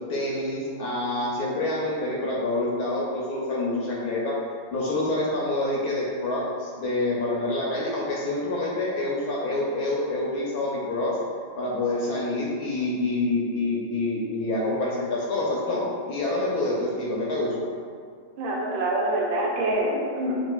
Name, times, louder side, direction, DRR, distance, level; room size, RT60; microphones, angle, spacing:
voice 1, 0.1-4.4 4.7-11.2 11.6-17.5, left 2 dB, 70° left, -5 dB, 0.9 m, -27 dB
voice 2, 18.4-20.3, right 1 dB, 85° right, -3 dB, 1.5 m, -25 dB
6.4 x 2.5 x 2.3 m, 2.1 s
omnidirectional pair, 2.1 m